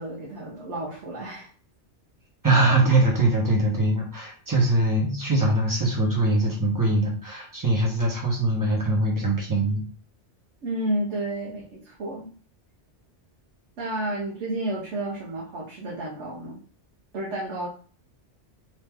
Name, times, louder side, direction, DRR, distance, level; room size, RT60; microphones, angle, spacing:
voice 1, 0.0-1.5 10.6-12.3 13.8-16.6 17.1-17.7, right 1 dB, 80° right, -4 dB, 1.2 m, -31 dB
voice 2, 2.4-9.8, right 2 dB, 20° right, -2 dB, 1.0 m, -22 dB
3.1 x 2.8 x 3.5 m, 0.40 s
omnidirectional pair, 1.2 m